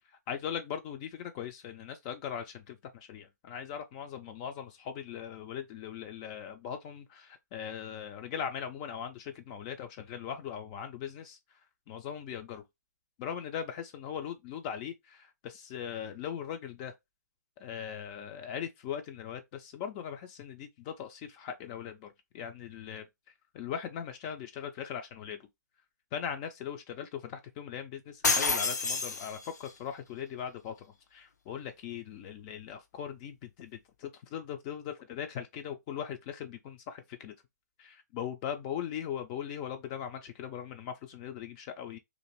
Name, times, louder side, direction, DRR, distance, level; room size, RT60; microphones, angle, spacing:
voice 1, 0.3-11.4 11.9-12.6 13.2-16.9 17.6-23.0 23.5-25.4 26.1-27.1 27.6-30.7 31.1-37.3 37.8-42.0, left 8 dB, 25° left, 0.3 m, -39 dB
sound 1, 28.2-29.7, left 4 dB, 70° left, 0.6 m, -29 dB
2.5 x 2.4 x 3.0 m
figure-of-eight pair, 125°, 9 cm